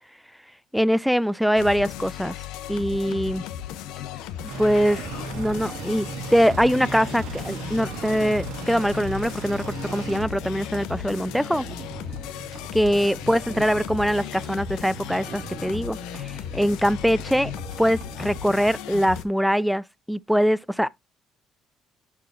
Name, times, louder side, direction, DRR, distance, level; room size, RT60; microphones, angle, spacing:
voice 1, 0.7-2.4 2.7-3.4 4.6-5.0 5.3-11.7 12.7-17.5 17.8-20.9, equal, ahead, 0.3 m, -23 dB
sound 1, 1.6-19.2, left 10 dB, 85° left, 0.8 m, -36 dB
sound 2, 4.5-10.2, right 5 dB, 90° right, 1.5 m, -37 dB
sound 3, 4.9-18.8, right 8 dB, 55° right, 0.7 m, -42 dB
10.5 x 4.7 x 2.6 m
cardioid pair, 90°, 0 cm